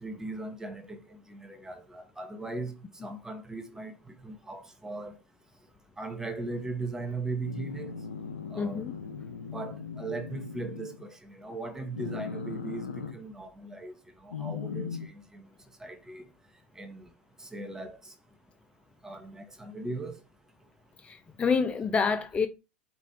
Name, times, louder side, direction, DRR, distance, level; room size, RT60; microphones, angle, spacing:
voice 1, 0.0-3.9 4.2-5.2 6.0-7.9 8.5-8.8 9.5-12.9 13.1-13.9 14.2-15.5 15.8-16.3 16.8-17.1 17.4-18.1 19.0-20.2, right 3 dB, 10° right, 0.9 m, -38 dB
sound 1, 7.4-11.0 11.9-13.2 14.3-15.1, left 6 dB, 85° left, 0.6 m, -38 dB
voice 2, 8.6-9.0 21.0-22.5, left 5 dB, 20° left, 0.5 m, -28 dB
5.1 x 2.4 x 4.3 m
figure-of-eight pair, 85°, 6 cm